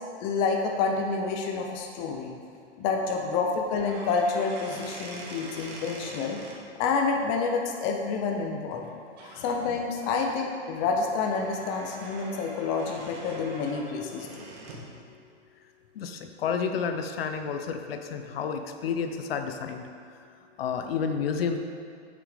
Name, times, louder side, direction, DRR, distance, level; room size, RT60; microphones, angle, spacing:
voice 1, 0.2-2.3 2.8-6.4 6.8-8.8 9.4-14.5, left 4 dB, 25° left, 1 dB, 0.7 m, -28 dB
sound 1, 3.7-6.6 8.7-8.9 9.2-9.5 10.0-14.9, right 2 dB, 40° right, 1.6 m, -44 dB
voice 2, 16.0-19.8 20.6-21.6, left 6 dB, 60° left, 6 dB, 0.8 m, -30 dB
7.4 x 6.7 x 5.0 m, 2.4 s
hypercardioid pair, 155°, 34 cm